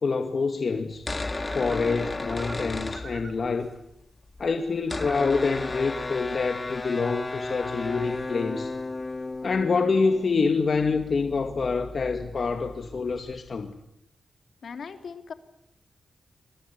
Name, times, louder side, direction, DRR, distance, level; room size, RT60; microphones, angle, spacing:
voice 1, 0.0-1.0 1.5-3.7 4.4-8.7 9.4-13.7, left 4 dB, 55° left, 2.2 m, -26 dB
sound 1, 0.9-3.7 3.9-4.0 4.2-13.6, left 2 dB, 30° left, 2.0 m, -35 dB
sound 2, 1.5-3.4 4.8-5.4, right 4 dB, 60° right, 5.0 m, -46 dB
voice 2, 14.6-15.3, left 6 dB, 75° left, 3.3 m, -38 dB
29.0 x 23.5 x 8.4 m
wide cardioid pair, 95°, 0 cm